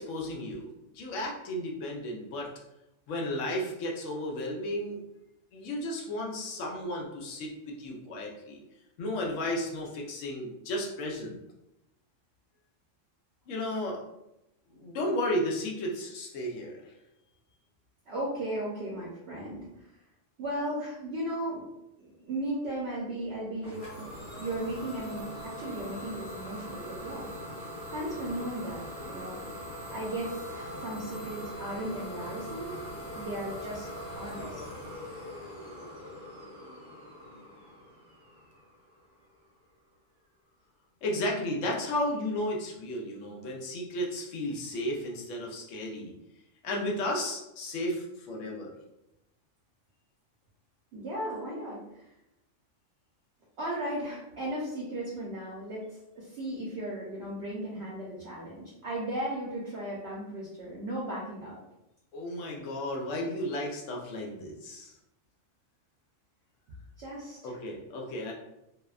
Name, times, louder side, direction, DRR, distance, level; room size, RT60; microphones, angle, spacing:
voice 1, 0.0-2.5 3.1-5.0 5.5-8.6 9.0-11.4 13.5-14.0 14.7-16.9 41.0-46.1 46.6-48.7 62.1-64.9 67.4-68.3, left 1 dB, 75° left, -1 dB, 0.9 m, -33 dB
voice 2, 18.1-19.9 20.4-21.6 22.0-24.1 24.3-27.3 27.9-29.4 29.9-32.8 33.1-33.9 34.1-34.7 50.9-52.1 53.6-61.6 67.0-67.6, right 1 dB, 65° right, -6 dB, 0.8 m, -36 dB
Idling / Domestic sounds home sounds, 23.6-39.2, equal, 45° left, 1.0 m, -41 dB
2.7 x 2.1 x 2.3 m, 0.87 s
omnidirectional pair, 1.3 m